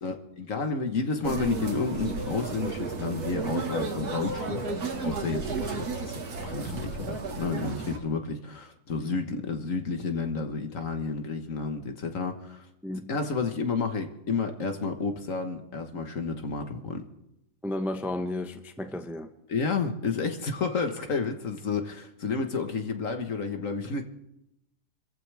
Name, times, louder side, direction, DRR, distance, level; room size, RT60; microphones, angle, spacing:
voice 1, 0.0-6.1 6.4-12.7 13.1-17.0 19.5-24.0, left 4 dB, 55° left, 6 dB, 1.7 m, -31 dB
sound 1, 1.2-8.0, right 4 dB, 75° right, 2.3 m, -33 dB
voice 2, 17.6-19.3, left 1 dB, ahead, 7 dB, 0.7 m, -33 dB
27.5 x 14.5 x 3.5 m, 0.84 s
omnidirectional pair, 1.7 m